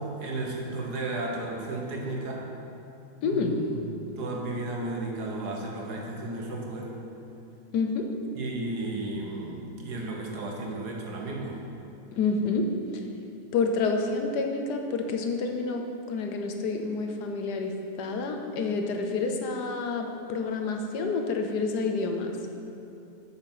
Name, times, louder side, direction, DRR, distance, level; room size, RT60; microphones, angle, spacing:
voice 1, 0.0-2.4 3.2-3.7 4.2-6.9 8.3-11.6, right 2 dB, 70° right, -1 dB, 1.8 m, -34 dB
voice 2, 3.2-3.6 7.7-8.1 12.1-12.7 13.5-15.8 16.1-22.4, left 4 dB, 80° left, 4 dB, 1.4 m, -28 dB
8.7 x 6.5 x 5.8 m, 2.8 s
omnidirectional pair, 1.8 m